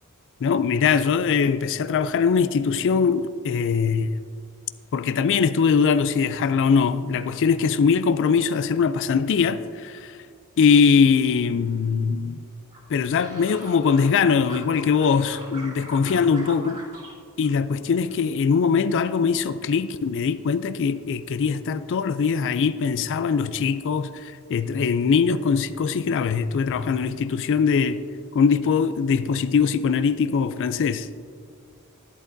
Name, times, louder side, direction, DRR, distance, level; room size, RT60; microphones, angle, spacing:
voice 1, 0.4-4.2 4.9-10.2 10.6-12.4 12.9-16.8 17.4-28.0 28.3-31.1, left 6 dB, 60° left, 0.4 m, -21 dB
sound 1, 12.7-14.2 14.4-17.1 17.4-18.2 18.5-18.9, right 1 dB, 40° right, 2.7 m, -42 dB
11.5 x 11.0 x 2.6 m
head